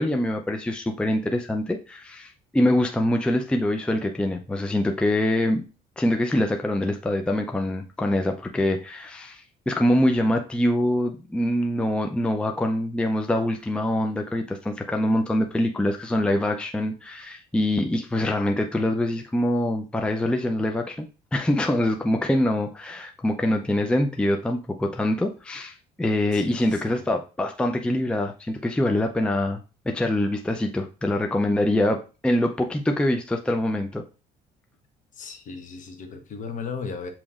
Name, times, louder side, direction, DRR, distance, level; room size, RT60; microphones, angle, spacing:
voice 1, 0.0-5.6 6.0-34.0, left 1 dB, 5° left, 0.5 m, -24 dB
voice 2, 26.3-27.0 35.1-37.1, left 5 dB, 50° left, 1.0 m, -36 dB
7.0 x 3.0 x 2.4 m
cardioid pair, 110°, 17 cm